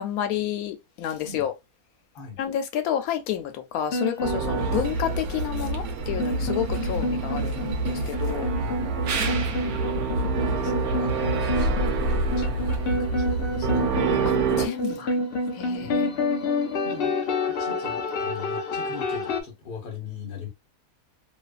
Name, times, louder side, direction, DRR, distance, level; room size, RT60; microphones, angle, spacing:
voice 1, 0.0-1.5 2.4-8.5 14.2-15.2 15.5-16.1, left 10 dB, 80° left, 1.0 m, -30 dB
sound 1, 3.9-19.4, left 2 dB, 65° left, 0.6 m, -29 dB
sound 2, 4.2-14.7, right 3 dB, 85° right, 1.1 m, -27 dB
voice 2, 6.4-6.8 8.6-9.4 10.5-13.9 15.8-15.9 16.6-17.2 17.6-20.5, left 5 dB, 45° left, 1.0 m, -41 dB
2.6 x 2.5 x 2.3 m
omnidirectional pair, 1.5 m